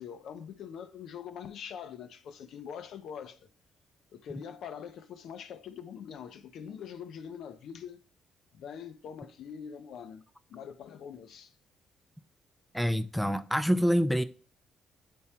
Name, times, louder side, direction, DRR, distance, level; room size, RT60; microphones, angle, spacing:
voice 1, 0.0-3.5 4.1-8.0 8.5-10.2 10.5-11.5, left 8 dB, 75° left, 0.7 m, -43 dB
voice 2, 12.7-14.2, equal, ahead, 0.5 m, -26 dB
8.4 x 3.6 x 4.3 m
cardioid pair, 90°, 0 cm